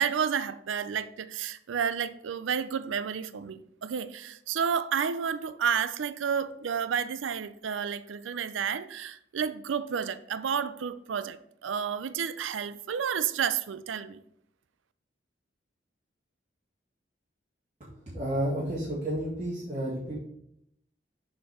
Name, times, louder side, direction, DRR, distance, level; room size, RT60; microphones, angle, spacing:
voice 1, 0.0-14.2, right 7 dB, 90° right, 13 dB, 0.4 m, -31 dB
voice 2, 17.8-20.2, right 1 dB, 35° right, -9 dB, 2.0 m, -31 dB
6.9 x 4.5 x 4.8 m, 0.75 s
head